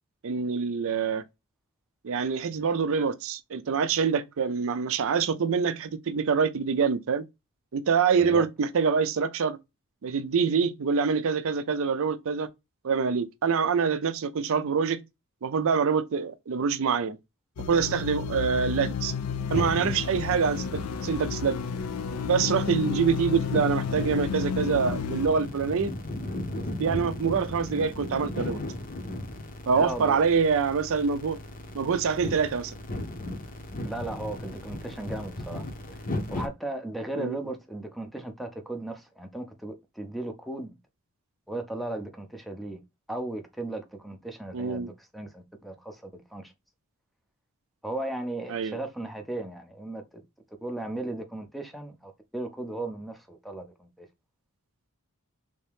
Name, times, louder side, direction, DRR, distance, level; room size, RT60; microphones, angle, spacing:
voice 1, 0.2-1.2 2.0-7.2 7.7-9.6 10.0-12.5 12.8-15.0 15.4-17.2 17.7-19.1 19.5-21.6 22.3-25.9 26.8-28.6 29.7-31.4 31.7-32.7 37.2-37.4 44.5-44.9 48.5-48.8, right 6 dB, 65° right, 0.5 m, -25 dB
sound 1, 17.6-25.3, left 6 dB, 80° left, 0.4 m, -32 dB
sound 2, 19.5-36.5, left 1 dB, 40° left, 0.7 m, -36 dB
voice 2, 29.7-30.2 33.8-35.6 36.3-40.7 41.5-42.8 43.1-46.5 47.8-50.2 50.6-54.1, right 2 dB, ahead, 0.6 m, -36 dB
3.5 x 2.7 x 3.4 m
head